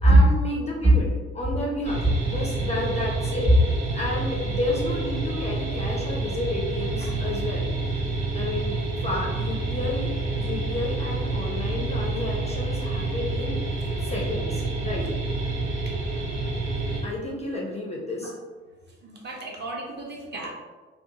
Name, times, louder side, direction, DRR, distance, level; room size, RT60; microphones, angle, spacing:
voice 1, 0.0-3.5 3.9-7.7 8.3-10.1 10.4-13.6 14.0-15.1 17.0-18.3, left 2 dB, 20° left, -3 dB, 0.4 m, -31 dB
sound 1, 1.8-17.0, right 3 dB, 70° right, 0.7 m, -28 dB
voice 2, 19.0-20.5, right 3 dB, 30° right, -2 dB, 0.6 m, -24 dB
2.6 x 2.1 x 2.7 m, 1.3 s
figure-of-eight pair, 45°, 34 cm